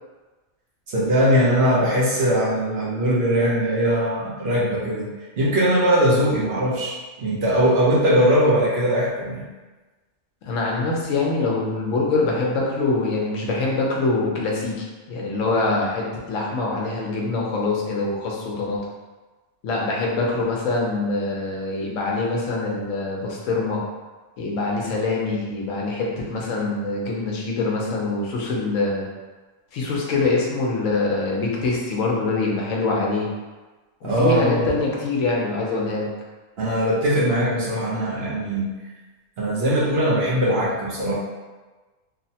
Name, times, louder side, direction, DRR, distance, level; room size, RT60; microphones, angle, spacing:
voice 1, 0.9-5.1 5.4-9.4 34.0-34.6 36.6-38.7 39.4-41.1, equal, 60° right, -6 dB, 0.9 m, -20 dB
voice 2, 10.4-18.8 19.6-23.8 24.4-29.0 29.7-33.3 34.0-36.1, left 3 dB, 75° left, -2 dB, 1.0 m, -24 dB
3.1 x 2.1 x 2.7 m, 1.3 s
omnidirectional pair, 1.3 m